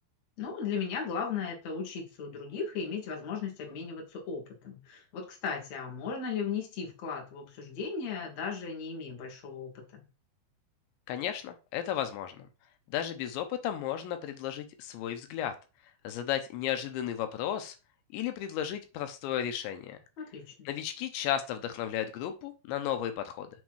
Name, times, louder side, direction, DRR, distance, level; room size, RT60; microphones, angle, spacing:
voice 1, 0.4-10.0 20.2-20.7, left 5 dB, 50° left, 0 dB, 2.5 m, -36 dB
voice 2, 11.1-12.5 12.9-15.6 16.0-17.7 18.1-20.0 20.7-23.5, left 10 dB, 85° left, 7 dB, 3.1 m, -34 dB
7.8 x 3.5 x 6.2 m, 0.31 s
omnidirectional pair, 5.1 m